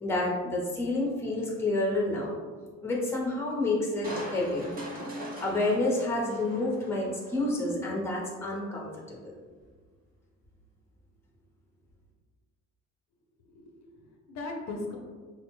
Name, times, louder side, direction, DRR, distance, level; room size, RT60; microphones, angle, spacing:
voice 1, 0.0-2.4 2.8-4.7 5.4-9.3, left 2 dB, 10° left, -3 dB, 0.7 m, -29 dB
Crushing, 4.0-7.4 7.9-8.0, right 1 dB, 30° right, 0.6 m, -40 dB
voice 2, 13.5-15.0, left 2 dB, 60° left, 1 dB, 0.5 m, -39 dB
4.1 x 2.1 x 3.0 m, 1.5 s
cardioid pair, 130°, 31 cm